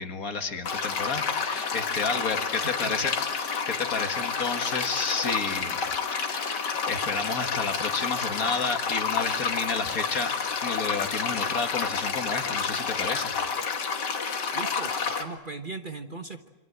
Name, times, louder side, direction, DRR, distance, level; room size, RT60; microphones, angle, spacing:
voice 1, 0.0-3.1 3.7-5.8 6.2-10.3 10.6-13.4, left 4 dB, 55° left, 7 dB, 2.0 m, -31 dB
sound 1, 0.6-15.2, left 5 dB, 85° left, 2.4 m, -29 dB
voice 2, 2.6-3.1 14.5-14.9 15.2-16.5, right 3 dB, 35° right, 6 dB, 1.2 m, -38 dB
27.0 x 24.5 x 8.0 m, 1.1 s
omnidirectional pair, 1.8 m